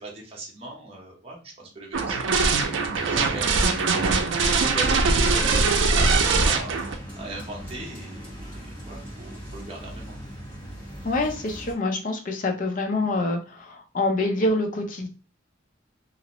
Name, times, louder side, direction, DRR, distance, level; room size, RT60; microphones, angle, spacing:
voice 1, 0.0-2.8 3.1-10.2, right 2 dB, 30° right, -2 dB, 0.7 m, -40 dB
sound 1, 1.9-6.9, right 4 dB, 85° right, 0.4 m, -22 dB
sound 2, 2.9-11.7, equal, 25° left, 1.3 m, -39 dB
voice 2, 11.0-15.1, left 2 dB, 45° left, 3 dB, 0.5 m, -26 dB
2.5 x 2.0 x 2.9 m, 0.33 s
head